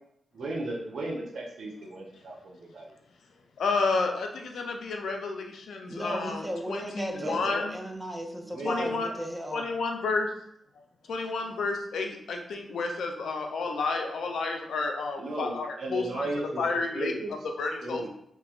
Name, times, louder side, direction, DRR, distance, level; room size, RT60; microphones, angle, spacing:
voice 1, 0.3-2.9 7.2-7.5 8.4-9.1 15.2-16.6 16.9-17.4 17.8-18.1, right 2 dB, 75° right, 0 dB, 0.5 m, -35 dB
voice 2, 3.6-7.8 8.6-9.1 9.5-10.3 11.1-16.3 16.6-17.1 17.6-18.1, left 3 dB, 80° left, 3 dB, 0.3 m, -31 dB
voice 3, 5.9-9.7, equal, 10° right, 2 dB, 0.5 m, -35 dB
3.0 x 2.1 x 2.3 m, 0.74 s
cardioid pair, 50°, 0 cm